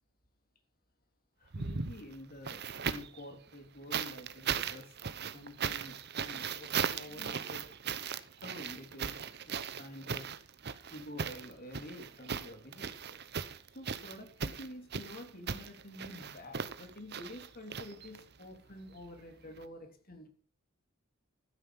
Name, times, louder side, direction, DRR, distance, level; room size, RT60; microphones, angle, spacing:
voice 1, 1.4-4.9 5.3-7.6 8.4-9.1 9.8-10.3 10.9-13.2 13.7-20.3, left 1 dB, 45° left, 4 dB, 3.3 m, -48 dB
sound 1, 1.5-3.2 3.9-18.4 19.6-19.7, right 6 dB, 55° right, 0.9 m, -38 dB
12.5 x 9.8 x 6.0 m, 0.42 s
head